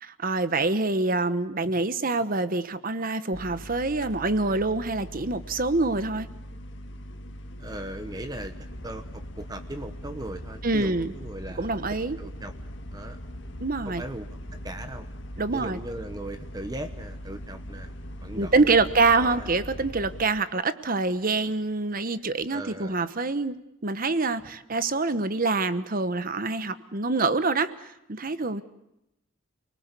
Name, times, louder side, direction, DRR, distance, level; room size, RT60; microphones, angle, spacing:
voice 1, 0.0-6.3 10.6-11.1 11.6-12.2 13.6-14.0 15.4-15.8 18.3-23.6 23.8-28.6, right 3 dB, 45° right, 12 dB, 1.1 m, -26 dB
sound 1, 3.3-20.2, equal, 65° left, 1.8 m, -40 dB
voice 2, 7.6-8.5 8.8-11.8 12.2-12.5 12.9-13.2 13.8-15.1 15.5-17.9 18.2-19.5 22.5-23.0, right 1 dB, 20° right, 8 dB, 1.1 m, -38 dB
28.5 x 20.0 x 8.3 m, 0.88 s
head